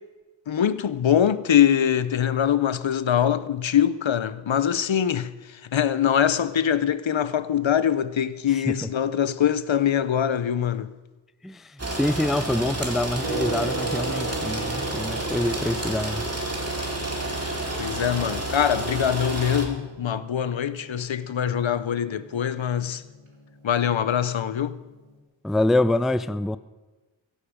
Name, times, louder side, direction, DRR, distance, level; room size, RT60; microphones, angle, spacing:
voice 1, 0.5-10.9 17.8-23.0 23.6-24.8, left 9 dB, 75° left, 0.7 m, -23 dB
sound 1, 11.8-19.7, right 2 dB, 30° right, 2.4 m, -30 dB
voice 2, 12.0-16.2 25.4-26.6, left 1 dB, ahead, 0.3 m, -25 dB
Gong, 13.2-25.2, right 3 dB, 80° right, 2.6 m, -38 dB
16.5 x 11.5 x 5.1 m
wide cardioid pair, 70°, 46 cm